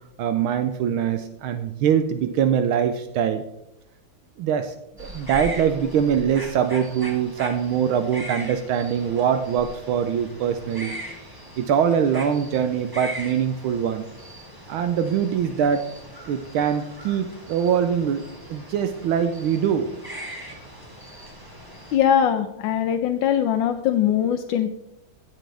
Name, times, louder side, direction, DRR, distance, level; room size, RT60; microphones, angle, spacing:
voice 1, 0.2-3.4 4.4-4.7 5.0-11.3 11.6-14.0 14.7-15.9 16.3-19.9, right 8 dB, 80° right, 9 dB, 1.5 m, -23 dB
sound 1, 5.0-22.0, equal, 10° right, 1.9 m, -40 dB
voice 2, 21.9-24.7, left 9 dB, 75° left, 6 dB, 1.3 m, -21 dB
16.5 x 7.7 x 3.4 m, 0.83 s
omnidirectional pair, 2.3 m